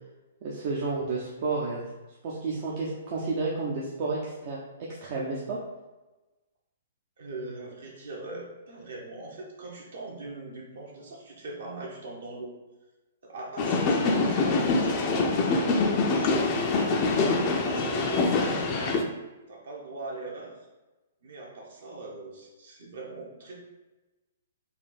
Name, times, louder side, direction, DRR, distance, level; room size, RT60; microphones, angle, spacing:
voice 1, 0.4-1.8 2.2-5.6, right 3 dB, 40° right, -5 dB, 0.7 m, -31 dB
voice 2, 7.2-12.5 13.2-16.7 17.3-19.0 19.5-20.5 21.2-23.6, right 2 dB, 60° right, -2 dB, 1.3 m, -40 dB
sound 1, 13.6-19.0, left 3 dB, 30° left, 0.5 m, -25 dB
4.2 x 2.7 x 4.0 m, 1.1 s
figure-of-eight pair, 115°, 0 cm